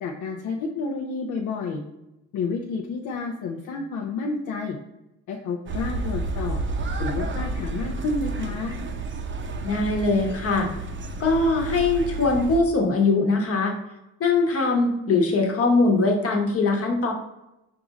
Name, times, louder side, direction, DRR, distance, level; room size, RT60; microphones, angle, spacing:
voice 1, 0.0-1.8 2.3-4.8 5.3-6.6 7.0-8.7, left 4 dB, 75° left, 1 dB, 0.6 m, -30 dB
sound 1, 5.7-12.6, right 2 dB, 40° right, 0.6 m, -31 dB
voice 2, 9.6-10.7 11.2-13.7 14.2-17.1, left 3 dB, 50° left, 2 dB, 1.1 m, -21 dB
4.7 x 2.5 x 3.9 m, 0.90 s
cardioid pair, 90°, 30 cm